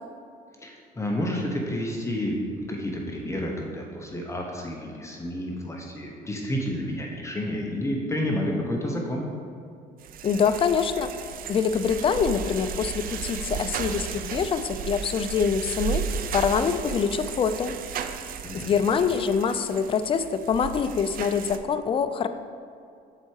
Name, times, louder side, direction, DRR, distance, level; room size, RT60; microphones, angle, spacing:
voice 1, 0.6-9.2 18.4-18.7, left 1 dB, 15° left, -1 dB, 1.0 m, -30 dB
sound 1, 10.0-21.6, right 7 dB, 60° right, 0.5 m, -34 dB
voice 2, 10.2-11.1 11.5-16.0 16.3-17.7 18.5-22.3, left 6 dB, 30° left, 10 dB, 0.4 m, -25 dB
7.5 x 4.6 x 4.7 m, 2.4 s
cardioid pair, 110°, 17 cm